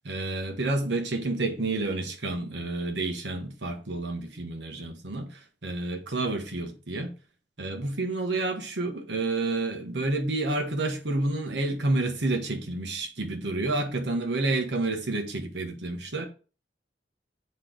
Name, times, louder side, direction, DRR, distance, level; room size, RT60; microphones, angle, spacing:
voice 1, 0.0-7.1 7.6-16.3, right 2 dB, 75° right, 1.2 m, -29 dB
8.3 x 3.2 x 3.8 m
head